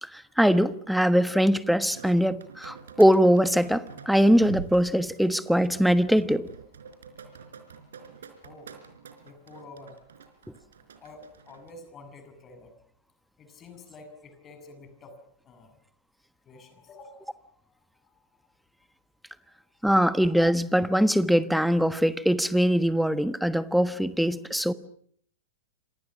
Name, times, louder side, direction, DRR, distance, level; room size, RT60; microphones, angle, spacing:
voice 1, 0.0-6.5 19.8-24.7, equal, ahead, 14 dB, 1.3 m, -22 dB
sound 1, 1.7-11.7, right 6 dB, 65° right, 4.3 m, -45 dB
voice 2, 8.4-8.7 9.2-10.0 11.0-12.7 13.4-15.2 15.4-15.8 16.4-17.5 17.8-18.2 19.4-19.9, left 2 dB, 25° left, 8 dB, 7.6 m, -49 dB
29.0 x 27.0 x 6.2 m, 0.63 s
figure-of-eight pair, 100°, 0 cm